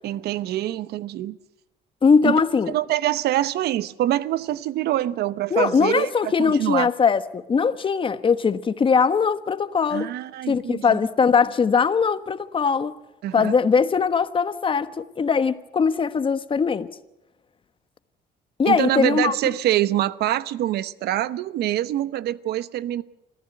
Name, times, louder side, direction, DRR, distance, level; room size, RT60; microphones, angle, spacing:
voice 1, 0.0-1.4 2.2-2.4 2.7-6.9 9.9-11.0 13.2-13.5 18.6-23.0, right 13 dB, 75° right, 0.9 m, -25 dB
voice 2, 2.0-2.7 5.5-10.1 10.5-12.9 13.3-16.9 18.6-19.3, left 5 dB, 30° left, 1.2 m, -21 dB
26.0 x 15.0 x 9.2 m
cardioid pair, 110°, 17 cm